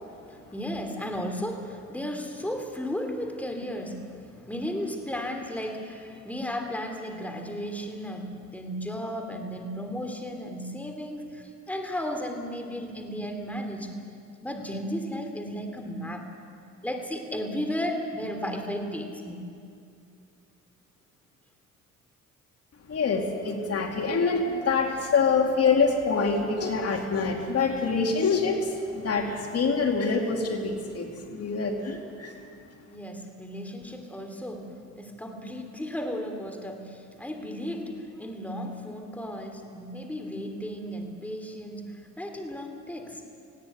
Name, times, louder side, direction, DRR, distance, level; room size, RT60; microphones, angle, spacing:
voice 1, 0.3-14.0 14.4-16.2 16.8-19.5 32.9-43.3, equal, 5° left, 4 dB, 2.9 m, -34 dB
voice 2, 22.9-32.4, left 4 dB, 55° left, 2 dB, 2.6 m, -25 dB
18.5 x 17.0 x 9.3 m, 2.4 s
cardioid pair, 90°, 30 cm